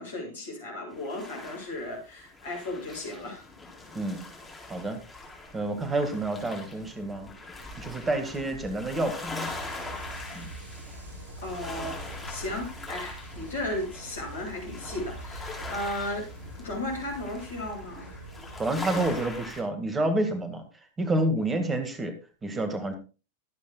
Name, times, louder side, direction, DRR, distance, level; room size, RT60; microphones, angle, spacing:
voice 1, 0.0-3.5 11.4-16.3 16.6-18.1, left 1 dB, 70° left, 0 dB, 7.5 m, -35 dB
sound 1, 0.9-19.6, left 3 dB, 5° left, 4.0 m, -42 dB
voice 2, 5.5-7.3 7.8-9.5 10.3-10.5 18.6-20.6 21.0-22.1 22.4-22.9, right 2 dB, 15° right, 7 dB, 2.0 m, -29 dB
sound 2, 9.2-19.2, right 2 dB, 75° right, 6.8 m, -44 dB
22.5 x 8.4 x 2.4 m, 0.33 s
figure-of-eight pair, 90°, 0 cm